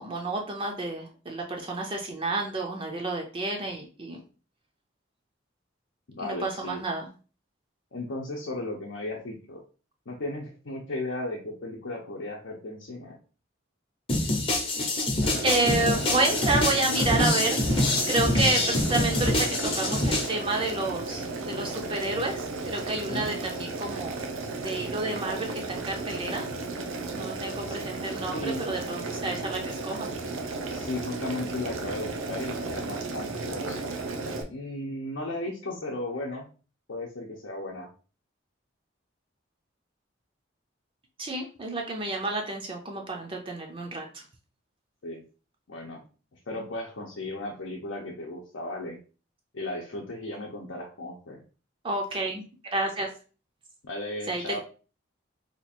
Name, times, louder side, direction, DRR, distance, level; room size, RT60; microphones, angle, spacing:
voice 1, 0.0-4.2 6.2-7.1 15.4-17.6 18.1-24.2 24.6-26.5 27.1-30.1 41.2-44.2 51.8-52.4 52.7-53.1 54.3-54.6, right 2 dB, 25° right, 1 dB, 0.5 m, -30 dB
voice 2, 6.1-6.8 7.9-9.6 10.1-13.2 23.1-23.3 27.7-27.8 28.3-28.6 30.7-33.8 34.5-36.5 36.9-37.9 45.0-45.2 45.7-46.0 46.3-49.0 49.5-51.4 53.8-54.6, left 2 dB, 70° left, -2 dB, 0.7 m, -35 dB
sound 1, 14.1-20.3, left 2 dB, 30° left, 0.7 m, -25 dB
Boiling, 15.2-34.4, right 3 dB, 85° right, 0.6 m, -34 dB
2.9 x 2.4 x 4.2 m, 0.36 s
head